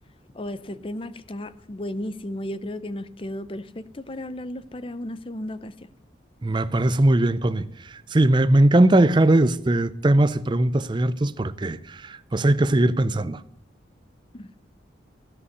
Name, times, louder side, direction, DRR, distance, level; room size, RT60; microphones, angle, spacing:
voice 1, 0.3-5.7 14.3-14.5, left 1 dB, 30° left, 0.6 m, -34 dB
voice 2, 6.4-13.4, right 1 dB, 25° right, 0.5 m, -20 dB
15.5 x 5.5 x 9.6 m
head